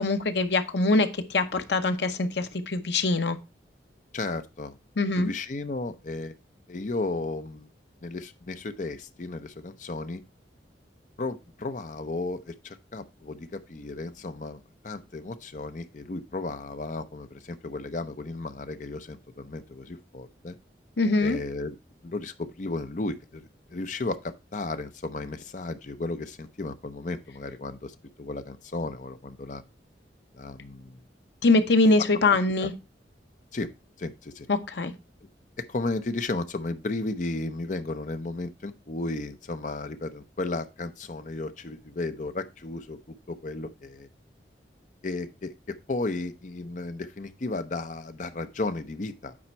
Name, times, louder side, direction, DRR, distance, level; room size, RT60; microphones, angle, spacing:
voice 1, 0.0-3.4 5.0-5.3 21.0-21.4 31.4-32.7 34.5-34.9, left 2 dB, 75° left, 0.8 m, -23 dB
voice 2, 4.1-4.8 5.2-6.3 6.7-7.7 8.0-10.2 11.2-20.6 21.2-21.7 22.0-29.6 30.3-31.0 32.6-32.7 33.5-33.7 34.0-34.5 35.7-43.0 43.3-44.1 45.0-49.4, left 2 dB, 45° left, 0.6 m, -34 dB
8.6 x 4.3 x 4.4 m
head